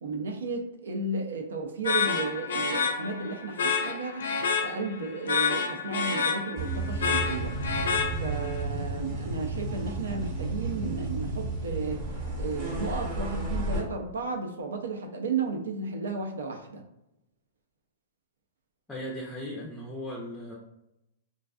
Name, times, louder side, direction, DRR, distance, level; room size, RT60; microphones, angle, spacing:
voice 1, 0.0-4.3 4.6-7.6 8.2-12.1 12.4-16.8, right 4 dB, 90° right, 4 dB, 0.4 m, -33 dB
sound 1, 1.8-8.6, left 5 dB, 80° left, 0.4 m, -29 dB
sound 2, 6.6-13.8, right 2 dB, 35° right, 0.8 m, -32 dB
voice 2, 18.9-20.6, equal, 10° left, -3 dB, 0.4 m, -37 dB
2.5 x 2.3 x 2.3 m, 0.87 s
hypercardioid pair, 135°, 0 cm